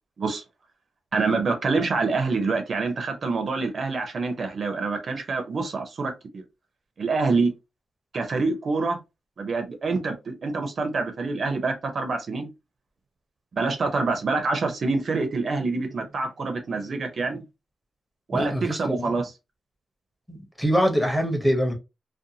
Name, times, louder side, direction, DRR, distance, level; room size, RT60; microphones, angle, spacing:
voice 1, 1.1-6.4 7.0-7.5 8.1-9.0 9.4-12.5 13.6-17.4 18.3-19.3, right 3 dB, 45° right, 0.5 m, -26 dB
voice 2, 18.3-19.2 20.3-21.7, equal, 5° left, 0.7 m, -24 dB
2.6 x 2.2 x 2.6 m
wide cardioid pair, 165°, 0 cm